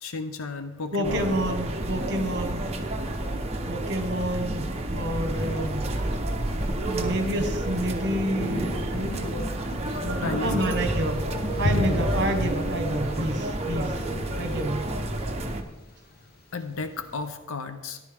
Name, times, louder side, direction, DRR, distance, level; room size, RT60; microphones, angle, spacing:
voice 1, 0.0-1.4 10.2-10.7 16.5-18.0, left 4 dB, 75° left, 8 dB, 0.7 m, -33 dB
voice 2, 0.9-2.7 3.6-5.9 6.8-9.5 10.0-11.2 11.6-14.0 14.4-14.8, right 1 dB, 50° right, 5 dB, 1.4 m, -29 dB
sound 1, 1.0-15.6, right 1 dB, 30° right, 0.9 m, -30 dB
Thunder, 5.3-17.3, left 1 dB, 45° left, 1.1 m, -35 dB
sound 2, 11.3-15.4, right 3 dB, 10° left, 4.3 m, -44 dB
14.0 x 10.5 x 3.6 m, 1.1 s
head